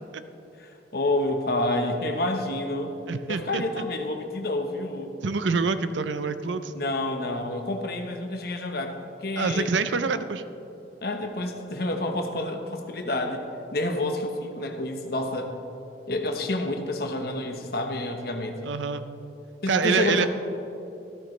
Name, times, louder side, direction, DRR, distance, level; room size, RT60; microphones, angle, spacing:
voice 1, 0.6-2.9 3.3-5.1 6.7-9.7 11.0-13.4 13.7-15.5 16.1-18.7 19.6-20.3, left 2 dB, 55° left, 4 dB, 1.1 m, -29 dB
voice 2, 3.1-3.6 5.2-6.7 9.4-10.4 18.6-19.0 19.7-20.3, right 4 dB, 90° right, 11 dB, 0.6 m, -26 dB
14.5 x 13.0 x 3.3 m, 2.9 s
head